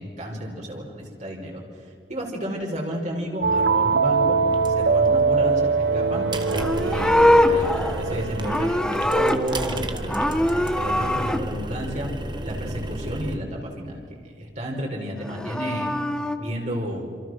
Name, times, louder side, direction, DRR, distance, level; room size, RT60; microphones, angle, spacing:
voice 1, 0.0-1.6 2.1-4.4 4.7-6.2 6.8-10.3 10.6-12.1 12.4-15.9 16.4-17.0, equal, 45° right, 0 dB, 4.9 m, -31 dB
sound 1, 3.4-9.9, right 4 dB, 85° right, 1.0 m, -23 dB
sound 2, 4.5-13.4, right 1 dB, 25° right, 1.7 m, -33 dB
Livestock farm animals working animals, 6.4-9.8 10.1-11.4 15.2-16.4, left 1 dB, 5° left, 1.2 m, -22 dB
28.0 x 27.0 x 6.3 m, 2.3 s
head